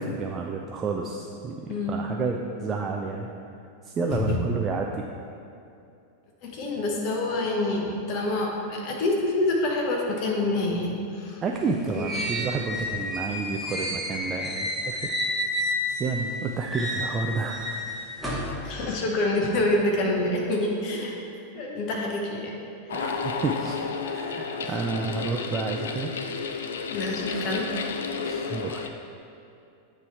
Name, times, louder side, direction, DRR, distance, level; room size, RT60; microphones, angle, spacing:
voice 1, 0.0-3.3 3.8-5.0 11.4-15.1 15.9-17.7 22.9-23.8 24.1-26.1 28.2-28.9, right 4 dB, 25° right, 1 dB, 0.3 m, -30 dB
voice 2, 6.4-11.4 12.0-12.1 18.6-21.2 21.5-22.5 24.6-24.7 26.9-27.7, left 2 dB, 40° left, 0 dB, 1.0 m, -27 dB
sound 1, 11.5-16.3 16.6-18.5, left 1 dB, ahead, 1.1 m, -31 dB
sound 2, 22.9-28.9, left 5 dB, 65° left, 0.4 m, -32 dB
8.1 x 3.2 x 4.5 m, 2.6 s
figure-of-eight pair, 90°, 0 cm